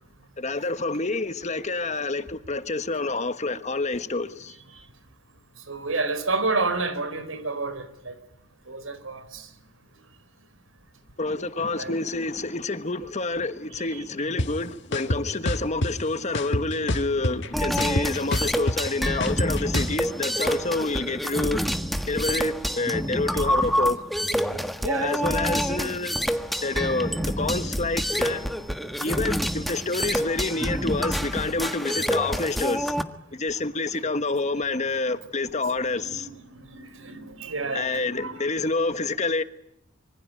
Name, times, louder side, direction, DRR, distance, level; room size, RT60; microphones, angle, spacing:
voice 1, 0.4-4.5 11.2-21.6 22.1-24.0 25.0-26.2 26.6-28.5 29.0-32.9 33.3-36.3 37.7-39.4, left 3 dB, 35° left, 1.4 m, -28 dB
voice 2, 5.7-8.1 8.7-9.5 11.6-11.9 13.9-14.0 16.5-17.2 20.5-20.7 23.3-23.4 24.8-25.3 30.5-30.8 35.8-38.4, right 3 dB, 90° right, 4.3 m, -31 dB
sound 1, 14.4-14.5 14.9-15.9 16.3-17.5 17.8-19.9, left 1 dB, 60° left, 1.8 m, -26 dB
sound 2, 17.5-33.0, equal, ahead, 1.5 m, -27 dB
26.0 x 24.5 x 9.1 m
head